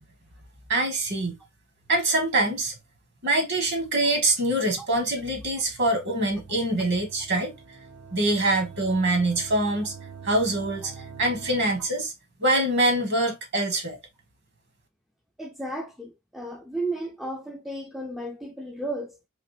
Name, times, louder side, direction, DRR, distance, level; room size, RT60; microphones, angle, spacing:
voice 1, 0.7-1.4 1.9-2.7 3.2-7.5 8.1-9.9 10.2-10.9 11.2-12.1 12.4-14.0, right 1 dB, 50° right, 1.3 m, -24 dB
sound 1, 5.3-12.1, right 6 dB, 80° right, 1.1 m, -45 dB
voice 2, 15.4-19.2, right 1 dB, ahead, 0.4 m, -34 dB
3.7 x 3.0 x 3.0 m
head